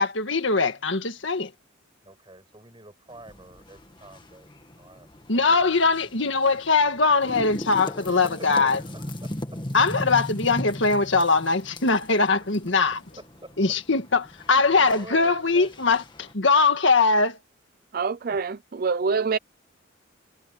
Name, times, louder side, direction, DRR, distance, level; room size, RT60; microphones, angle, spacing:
voice 1, 0.0-1.5 5.3-8.8 9.7-13.0 13.6-17.4, left 4 dB, 65° left, 1.8 m, -21 dB
voice 2, 2.0-4.5 4.8-5.1 5.3-5.4 5.8-5.9 7.8-9.6 13.2-13.6 14.9-15.7 16.7-17.0 18.2-18.6, right 2 dB, 25° right, 7.5 m, -47 dB
sound 1, 3.1-16.3, left 1 dB, 25° left, 1.9 m, -39 dB
voice 3, 17.9-19.4, right 5 dB, 45° right, 0.4 m, -25 dB
head